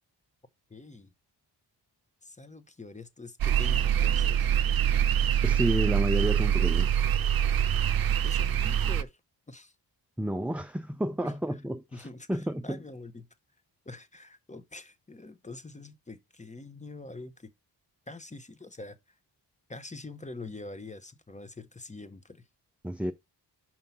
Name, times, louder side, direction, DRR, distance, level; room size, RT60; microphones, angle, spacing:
voice 1, 0.7-1.1 2.2-4.5 7.9-9.2 9.5-9.7 11.2-11.3 11.9-13.3 13.8-17.5 18.1-19.0 19.7-22.4, left 3 dB, 15° left, 0.9 m, -45 dB
sound 1, 3.4-9.0, right 9 dB, 55° right, 0.6 m, -25 dB
voice 2, 5.4-6.9 10.2-12.8 22.8-23.1, right 1 dB, 5° right, 0.4 m, -30 dB
5.5 x 4.4 x 5.7 m
cardioid pair, 85°, 42 cm